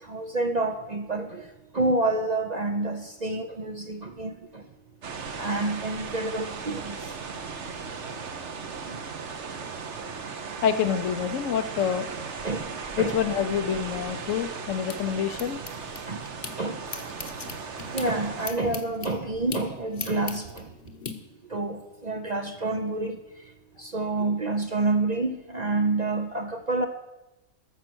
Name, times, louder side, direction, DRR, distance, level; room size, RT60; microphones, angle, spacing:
voice 1, 0.0-1.4 1.7-4.6 5.4-7.0 8.9-9.0 12.4-12.7 13.0-13.2 16.1-16.3 16.6-16.8 17.9-20.7 21.5-23.2 23.8-26.9, right 2 dB, 40° right, 6 dB, 0.7 m, -28 dB
sound 1, 5.0-18.5, right 5 dB, 60° right, 1.3 m, -37 dB
voice 2, 10.6-12.1 13.0-15.6, left 8 dB, 70° left, 10 dB, 1.1 m, -27 dB
sound 2, 14.2-16.5 16.9-21.1, left 5 dB, 40° left, 1.1 m, -39 dB
12.5 x 7.4 x 6.2 m, 1.0 s
omnidirectional pair, 1.4 m